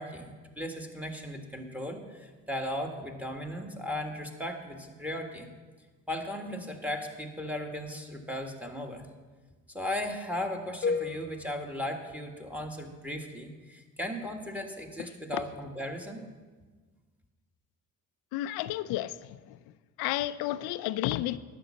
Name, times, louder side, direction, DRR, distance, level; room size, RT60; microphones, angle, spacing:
voice 1, 0.0-5.5 6.1-9.1 9.7-16.2, left 1 dB, 5° right, 1.6 m, -36 dB
sound 1, 10.8-12.9, left 5 dB, 30° left, 1.0 m, -35 dB
voice 2, 18.3-19.1 19.5-19.6 20.0-21.4, left 14 dB, 85° left, 0.5 m, -31 dB
10.0 x 6.1 x 7.4 m
supercardioid pair, 70°, 37 cm